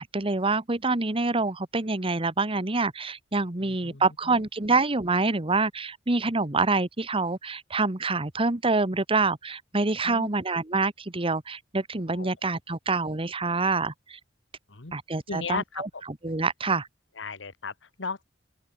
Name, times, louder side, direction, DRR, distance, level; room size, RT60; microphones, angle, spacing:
voice 1, 0.0-14.2 14.9-15.9 16.2-16.9, right 3 dB, 30° right, 1.4 m, -26 dB
voice 2, 3.6-4.4 10.0-10.3 12.1-12.3 14.7-14.9 15.3-16.0 17.2-18.2, left 4 dB, 75° left, 1.7 m, -36 dB
open air
head